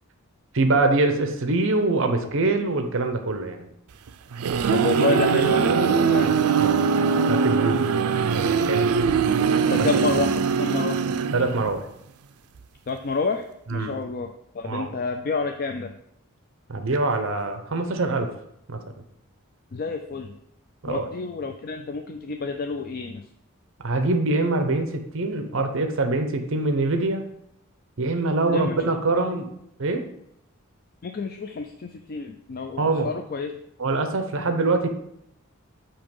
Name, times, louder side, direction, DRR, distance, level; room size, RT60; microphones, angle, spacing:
voice 1, 0.5-3.7 6.6-9.0 9.8-9.9 11.3-11.9 13.7-14.0 14.6-14.9 16.7-18.3 18.7-18.8 20.8-21.1 23.8-27.2 28.0-29.5 29.8-30.0 32.8-33.1 33.8-34.9, right 2 dB, 60° right, 6 dB, 0.8 m, -24 dB
sound 1, 4.1-11.8, right 6 dB, 85° right, 0.4 m, -22 dB
voice 2, 4.7-6.3 9.7-11.0 12.9-13.4 13.7-15.9 19.7-20.3 20.9-23.2 28.5-28.8 31.0-33.5, left 4 dB, 45° left, 5 dB, 0.4 m, -29 dB
8.6 x 2.9 x 5.3 m, 0.77 s
head